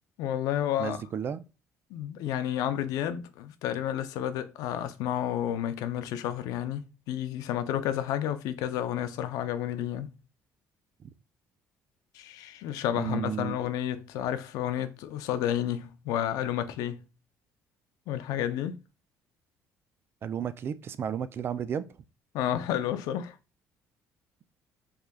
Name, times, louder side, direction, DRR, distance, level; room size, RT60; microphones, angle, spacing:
voice 1, 0.2-1.0 1.9-10.1 12.1-17.0 18.1-18.8 22.3-23.4, left 11 dB, 85° left, 0.5 m, -31 dB
voice 2, 0.8-1.4 11.0-11.1 12.9-13.6 20.2-21.9, right 8 dB, 40° right, 0.3 m, -33 dB
3.6 x 3.3 x 2.3 m
cardioid pair, 120°, 6 cm